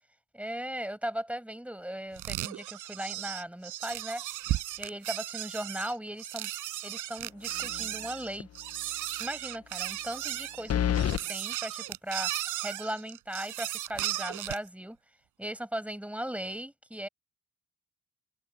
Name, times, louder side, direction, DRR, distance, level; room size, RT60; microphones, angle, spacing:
voice 1, 0.3-4.2 4.8-6.5 6.8-8.5 9.2-12.3 12.6-15.0 15.4-17.1, right 1 dB, 5° right, 6.0 m, -38 dB
sound 1, 2.2-14.7, right 15 dB, 90° right, 6.0 m, -36 dB
sound 2, 7.6-8.0 8.4-8.5 10.7-11.2, left 9 dB, 55° left, 1.3 m, -28 dB
cardioid pair, 90°, 30 cm